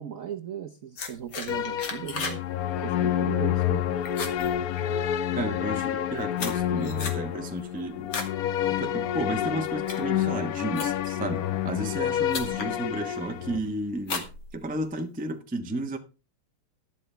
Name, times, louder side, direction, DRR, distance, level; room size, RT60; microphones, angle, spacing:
voice 1, 0.0-2.4 2.8-3.9, right 9 dB, 65° right, 0.8 m, -37 dB
sound 1, 1.0-2.4 2.7-3.1 3.5-3.8 4.0-5.2 5.9-8.4 8.8-9.1 9.6-11.2 11.9-12.0 12.3-12.7 13.2-13.6 14.0-15.0, left 4 dB, 55° left, 2.1 m, -35 dB
sound 2, 1.5-13.6, left 11 dB, 70° left, 0.8 m, -28 dB
voice 2, 5.3-8.1 8.8-14.3 14.5-16.0, right 1 dB, 15° right, 0.3 m, -33 dB
11.5 x 11.5 x 3.4 m
omnidirectional pair, 2.4 m